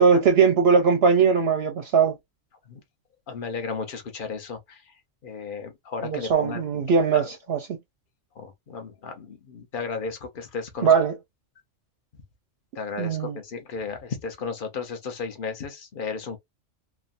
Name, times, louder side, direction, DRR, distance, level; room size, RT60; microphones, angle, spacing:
voice 1, 0.0-2.2 6.0-7.8 10.8-11.2 13.0-13.4, right 5 dB, 65° right, 0.7 m, -20 dB
voice 2, 3.3-4.8 5.2-6.8 7.1-7.3 8.4-10.9 12.8-16.4, left 5 dB, 45° left, 0.9 m, -34 dB
3.0 x 2.2 x 2.4 m
omnidirectional pair, 1.3 m